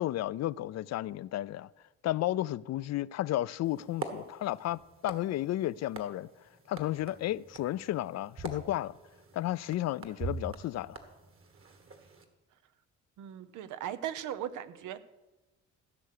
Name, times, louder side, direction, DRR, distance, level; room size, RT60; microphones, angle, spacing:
voice 1, 0.0-1.7 2.0-6.3 6.7-9.0 9.3-11.0, left 14 dB, 60° left, 0.4 m, -33 dB
sound 1, 3.6-12.2, right 4 dB, 45° right, 1.7 m, -45 dB
voice 2, 13.2-15.0, right 11 dB, 90° right, 0.8 m, -38 dB
15.5 x 6.8 x 6.6 m
cardioid pair, 90°, 30 cm